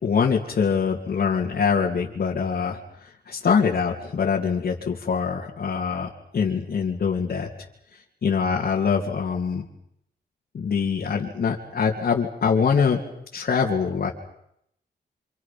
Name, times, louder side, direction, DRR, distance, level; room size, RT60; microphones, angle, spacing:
voice 1, 0.0-7.5 7.9-9.7 10.5-13.0 13.3-14.1, left 6 dB, 65° left, -2 dB, 2.7 m, -24 dB
30.0 x 26.5 x 5.9 m, 0.76 s
wide cardioid pair, 120°, 17 cm